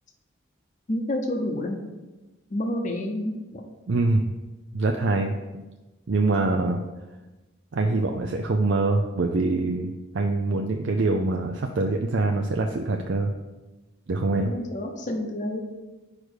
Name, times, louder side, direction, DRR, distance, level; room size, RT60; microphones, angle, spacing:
voice 1, 0.9-1.8 2.5-3.6 14.3-15.6, left 1 dB, 35° left, 3 dB, 0.8 m, -29 dB
voice 2, 3.9-4.2 4.7-5.6 6.1-6.8 7.7-13.3 14.1-14.5, right 3 dB, 65° right, 3 dB, 0.5 m, -24 dB
5.0 x 4.9 x 6.3 m, 1.1 s
head